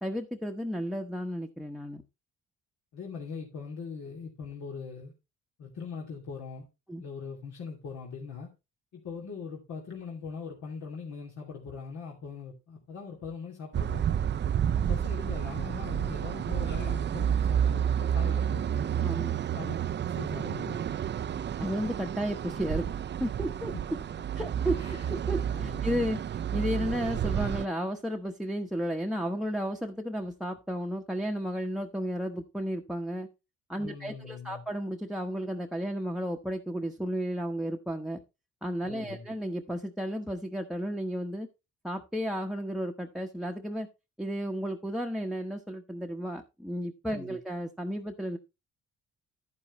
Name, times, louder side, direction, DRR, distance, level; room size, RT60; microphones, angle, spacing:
voice 1, 0.0-2.0 6.9-7.0 19.0-19.3 21.6-22.9 23.2-23.7 24.4-24.8 25.1-33.3 33.7-38.2 38.6-41.5 41.8-43.9 44.2-48.4, equal, ahead, 1.0 m, -33 dB
voice 2, 2.9-5.1 5.6-6.6 7.0-8.5 8.9-14.0 14.7-18.7 19.5-19.8 20.0-20.8 24.8-25.1 25.4-25.8 33.8-34.6 38.8-39.3 47.1-47.4, left 5 dB, 75° left, 2.7 m, -41 dB
sound 1, 13.7-27.7, right 9 dB, 35° right, 0.5 m, -30 dB
sound 2, 14.4-14.5 15.3-15.7 16.7-17.2, left 2 dB, 35° left, 1.8 m, -53 dB
10.5 x 9.7 x 3.1 m
cardioid pair, 90°, 30 cm